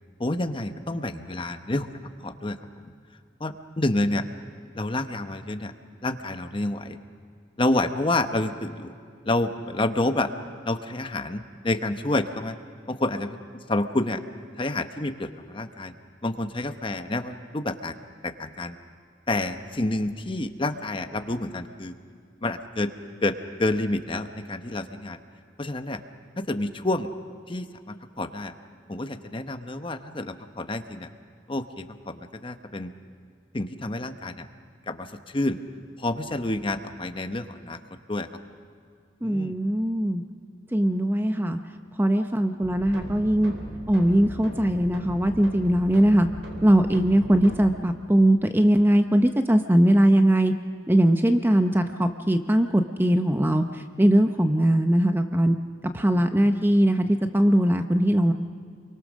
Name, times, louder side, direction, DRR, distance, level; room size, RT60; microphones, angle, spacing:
voice 1, 0.2-1.9 2.2-2.6 3.4-4.2 4.7-5.7 6.0-7.0 7.6-8.9 9.2-10.3 10.6-12.5 12.9-13.4 13.7-14.2 14.6-15.9 16.2-17.9 18.2-18.8 19.3-21.9 22.4-22.9 23.2-23.3 23.6-25.2 25.6-26.0 26.4-27.1 27.5-28.5 28.9-31.1 31.5-32.9 33.5-34.5 34.9-35.6 36.0-37.8 38.1-38.3 39.2-39.6 56.1-56.5, left 2 dB, 30° left, 8 dB, 0.9 m, -28 dB
voice 2, 39.2-40.2 40.7-41.6 42.0-43.5 43.9-46.3 46.6-50.5 50.9-55.6 55.9-58.3, right 1 dB, 10° right, 7 dB, 0.7 m, -20 dB
sound 1, 42.6-47.7, equal, 85° right, 4.4 m, -39 dB
28.5 x 23.5 x 6.4 m, 2.2 s
head